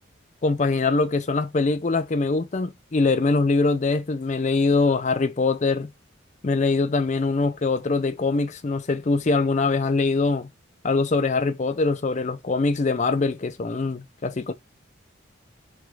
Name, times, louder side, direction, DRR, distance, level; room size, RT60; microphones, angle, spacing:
voice 1, 0.4-5.9 6.4-10.5 10.8-14.5, left 3 dB, 35° left, 0.4 m, -23 dB
3.5 x 2.9 x 4.8 m
head